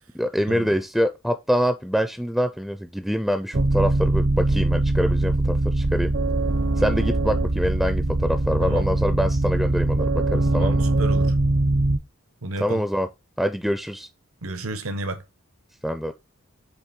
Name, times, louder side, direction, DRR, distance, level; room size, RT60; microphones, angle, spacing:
voice 1, 0.1-6.1 6.8-10.8 12.6-13.1 13.4-14.1 15.8-16.1, equal, ahead, 0.4 m, -25 dB
sound 1, 3.5-12.0, right 2 dB, 60° right, 0.8 m, -22 dB
voice 2, 10.4-11.3 12.4-12.8 14.4-15.2, right 2 dB, 85° right, 1.0 m, -31 dB
8.1 x 3.4 x 4.4 m
head